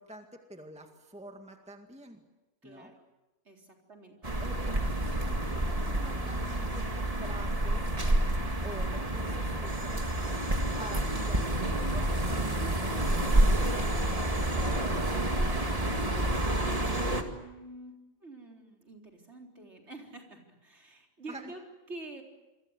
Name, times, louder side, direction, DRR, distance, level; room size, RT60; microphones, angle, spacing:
voice 1, 0.0-2.2 2.6-2.9 4.4-7.9 8.6-10.0 10.8-15.3 21.3-21.5, right 1 dB, 5° right, 4 dB, 2.0 m, -47 dB
voice 2, 2.6-3.0 3.5-4.3 16.8-17.9 18.2-21.6 21.9-22.2, right 2 dB, 50° right, 1 dB, 4.2 m, -47 dB
sound 1, 4.2-17.2, right 1 dB, 25° right, 2.2 m, -29 dB
28.0 x 23.5 x 8.0 m, 1.1 s
omnidirectional pair, 1.5 m